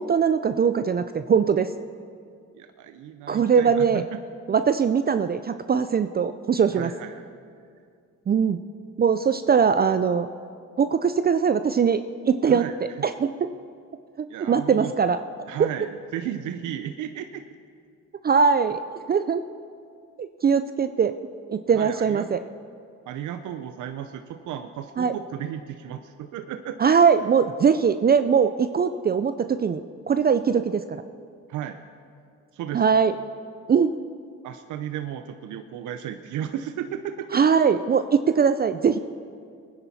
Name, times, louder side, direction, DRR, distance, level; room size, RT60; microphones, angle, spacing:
voice 1, 0.0-1.7 3.3-4.0 4.5-6.9 8.3-8.6 9.0-10.3 10.8-12.0 12.3-12.7 13.0-13.5 14.2-15.2 15.6-15.7 18.2-18.8 19.1-19.4 20.2-21.2 21.5-22.4 25.0-25.1 26.8-29.8 30.1-31.0 32.7-33.1 33.7-33.9 37.3-39.0, right 6 dB, 30° right, 10 dB, 0.5 m, -21 dB
voice 2, 2.6-4.0 6.7-7.2 12.4-13.0 14.3-14.9 15.5-17.4 21.7-22.3 23.1-26.8 31.5-31.8 32.5-32.8 34.4-37.4, right 10 dB, 80° right, 8 dB, 0.7 m, -34 dB
22.5 x 10.0 x 4.2 m, 2.3 s
cardioid pair, 90°, 30 cm